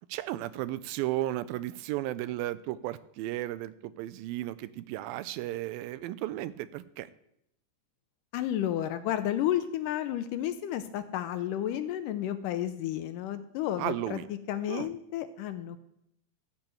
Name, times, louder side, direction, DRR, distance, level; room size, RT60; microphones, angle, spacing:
voice 1, 0.1-7.1 13.8-14.3 14.7-14.9, right 15 dB, 85° right, 15 dB, 2.3 m, -34 dB
voice 2, 8.3-15.8, left 11 dB, 80° left, 10 dB, 2.1 m, -32 dB
13.5 x 5.9 x 7.8 m, 0.78 s
omnidirectional pair, 4.2 m